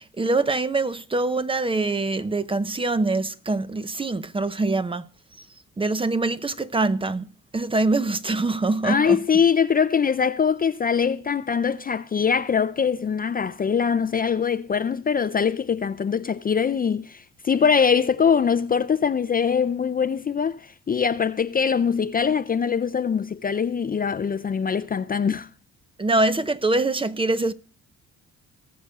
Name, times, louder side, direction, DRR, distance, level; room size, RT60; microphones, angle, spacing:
voice 1, 0.0-5.1 5.8-7.3 7.5-9.2 26.0-27.5, right 2 dB, 15° right, 0.7 m, -24 dB
voice 2, 8.8-25.5, left 6 dB, 30° left, 0.5 m, -23 dB
19.0 x 6.9 x 3.6 m
cardioid pair, 90°, 30 cm